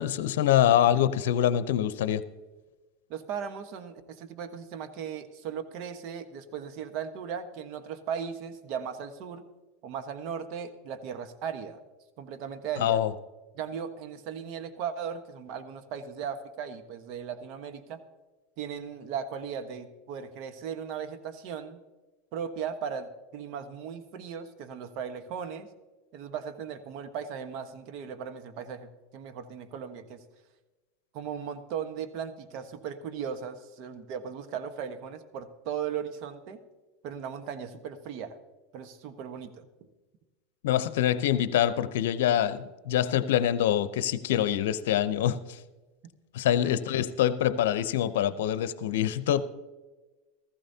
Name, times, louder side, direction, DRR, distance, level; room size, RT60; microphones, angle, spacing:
voice 1, 0.0-2.2 12.8-13.1 40.6-45.6 46.3-49.4, left 11 dB, 75° left, 0.7 m, -25 dB
voice 2, 3.1-9.5 9.8-11.8 12.2-13.0 13.5-18.0 18.6-21.8 22.3-25.7 26.1-30.2 31.1-36.6 37.0-38.4 38.7-39.7 46.6-46.8, right 7 dB, 55° right, 1.2 m, -37 dB
15.5 x 14.5 x 2.8 m
hypercardioid pair, 105°, 0 cm